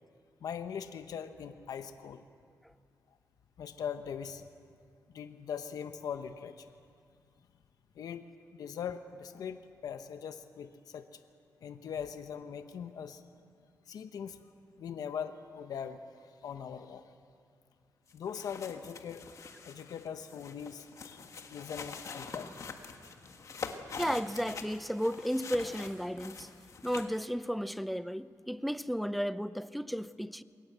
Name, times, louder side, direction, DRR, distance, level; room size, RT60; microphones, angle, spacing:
voice 1, 0.4-2.2 3.6-4.4 5.1-6.7 8.0-8.3 8.6-11.2 11.6-13.2 13.9-14.4 14.8-16.0 16.4-17.1 18.1-19.3 19.6-21.2 21.5-22.5, left 7 dB, 80° left, 0.9 m, -41 dB
sound 1, 18.1-27.2, left 5 dB, 55° left, 1.6 m, -45 dB
voice 2, 24.0-26.5 26.8-30.4, equal, ahead, 0.5 m, -33 dB
21.5 x 18.0 x 8.0 m
wide cardioid pair, 120°, 6 cm